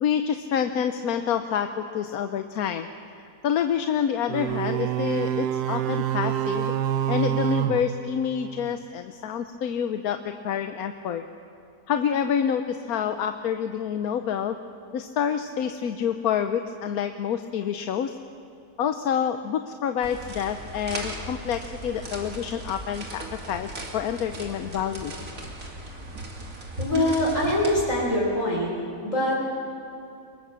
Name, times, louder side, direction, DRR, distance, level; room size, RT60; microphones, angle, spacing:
voice 1, 0.0-2.9 3.4-6.7 7.1-10.2 10.4-11.2 11.9-14.6 14.9-18.2 18.8-25.1, left 8 dB, 70° left, 8 dB, 1.2 m, -27 dB
sound 1, 4.3-8.8, right 10 dB, 85° right, 1.3 m, -27 dB
sound 2, 20.0-28.1, right 1 dB, 55° right, 3.1 m, -37 dB
voice 2, 26.8-28.8 29.0-29.4, left 1 dB, 50° left, -3 dB, 4.4 m, -23 dB
23.5 x 21.0 x 7.4 m, 2.6 s
omnidirectional pair, 1.7 m